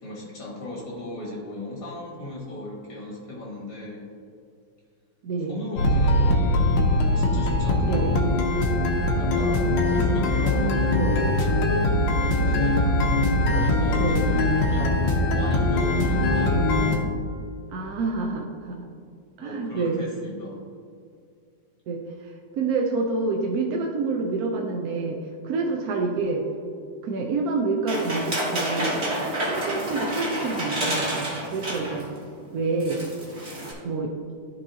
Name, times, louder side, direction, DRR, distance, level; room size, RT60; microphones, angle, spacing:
voice 1, 0.0-4.1 5.5-8.3 9.2-11.1 12.3-12.9 13.5-16.6 19.4-20.6, left 1 dB, 50° left, -4 dB, 2.5 m, -37 dB
voice 2, 5.2-5.6 7.8-8.2 9.8-10.5 10.9-11.2 12.8-13.1 13.4-13.6 14.0-14.4 17.7-18.9 19.4-20.0 21.9-26.4 27.0-28.9 29.4-32.1 32.5-33.1 33.8-34.1, right 3 dB, 65° right, 0 dB, 1.0 m, -28 dB
sound 1, 5.8-17.0, left 1 dB, 80° left, 1.7 m, -22 dB
sound 2, 27.9-32.1 32.4-32.5 32.8-33.7, right 1 dB, 35° right, 2.0 m, -29 dB
13.5 x 4.7 x 2.8 m, 2.3 s
omnidirectional pair, 2.0 m